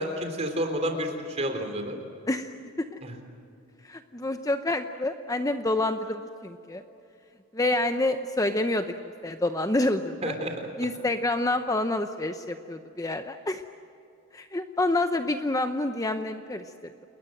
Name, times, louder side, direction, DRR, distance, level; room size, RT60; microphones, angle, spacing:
voice 1, 0.0-2.0 3.0-3.1 10.2-10.5, equal, 30° right, 5 dB, 3.6 m, -30 dB
voice 2, 2.3-3.0 3.8-6.8 7.5-8.9 9.2-10.3 10.8-13.6 14.3-16.9, left 2 dB, 15° left, 8 dB, 0.7 m, -28 dB
29.5 x 21.0 x 7.9 m, 2.7 s
head